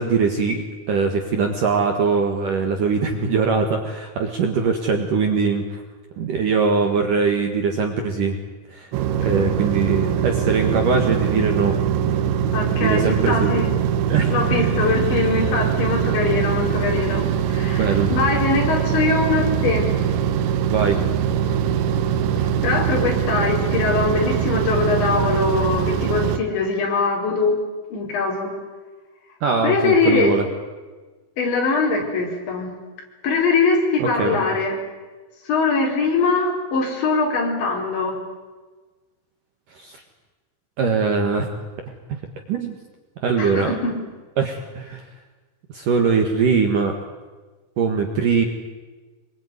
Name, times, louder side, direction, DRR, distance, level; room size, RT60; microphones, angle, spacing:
voice 1, 0.0-5.8 6.2-8.4 8.7-8.9 9.2-11.8 12.8-13.5 14.1-14.9 17.7-18.1 20.7-21.0 29.4-30.4 34.0-34.4 39.8-40.0 40.8-41.5 42.5-42.8 43.2-43.8 44.4-45.0 45.7-47.0 47.8-48.4, right 5 dB, 55° right, 4 dB, 2.6 m, -21 dB
sound 1, 8.9-26.4, right 9 dB, 75° right, 3.4 m, -22 dB
voice 2, 12.5-13.7 14.3-19.9 22.6-27.6 27.9-28.5 29.6-30.3 31.4-32.7 33.2-34.8 35.5-38.2 43.4-43.7, left 4 dB, 65° left, 0 dB, 7.2 m, -22 dB
25.5 x 22.0 x 9.6 m, 1.3 s
omnidirectional pair, 5.6 m